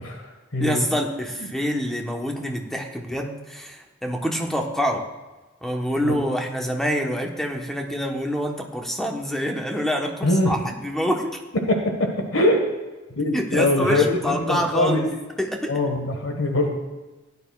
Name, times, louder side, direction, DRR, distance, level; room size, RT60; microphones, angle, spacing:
voice 1, 0.0-0.8 1.3-1.5 6.0-6.1 10.2-10.5 11.7-12.7 13.1-15.0 15.7-16.7, left 1 dB, 75° left, 3 dB, 1.5 m, -23 dB
voice 2, 0.6-5.1 5.6-11.3 13.3-15.1 15.4-15.7, equal, ahead, 2 dB, 1.1 m, -26 dB
16.5 x 10.5 x 2.4 m, 1.2 s
head